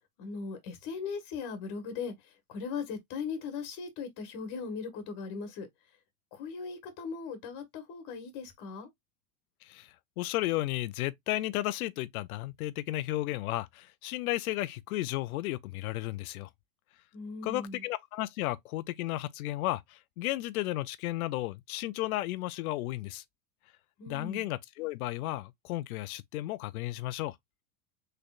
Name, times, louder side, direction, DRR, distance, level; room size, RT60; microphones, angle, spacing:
voice 1, 0.2-5.7 6.3-8.9 17.1-17.8 24.0-24.4, left 5 dB, 45° left, 1.4 m, -39 dB
voice 2, 9.6-16.5 17.4-23.2 24.1-27.4, left 16 dB, 75° left, 0.5 m, -34 dB
3.7 x 3.3 x 2.3 m
supercardioid pair, 125°, 44 cm